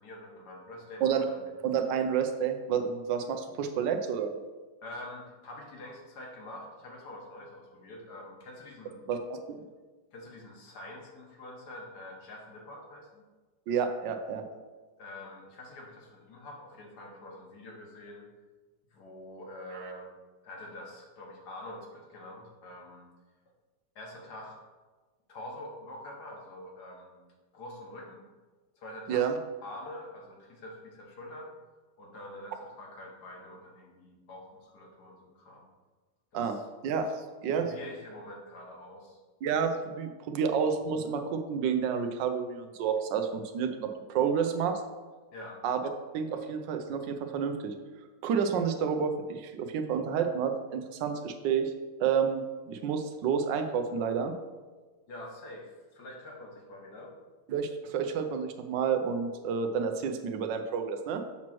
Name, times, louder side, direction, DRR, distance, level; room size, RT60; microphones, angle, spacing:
voice 1, 0.0-1.5 4.8-9.1 10.1-13.2 15.0-18.2 18.9-20.1 20.4-23.1 23.9-24.6 25.3-27.2 27.5-28.2 28.8-29.3 29.6-31.5 32.0-35.6 36.3-36.6 37.0-37.1 37.5-39.2 45.3-45.6 55.1-57.1, left 1 dB, 65° left, 0 dB, 1.6 m, -46 dB
voice 2, 1.6-4.4 9.1-9.6 13.7-14.4 19.7-19.9 29.1-29.3 36.3-36.6 36.8-37.7 39.4-44.8 45.6-45.8 46.1-47.7 48.2-51.7 52.0-54.3 57.5-61.2, right 7 dB, 85° right, 6 dB, 1.3 m, -30 dB
7.2 x 3.0 x 5.9 m, 1.3 s
omnidirectional pair, 1.9 m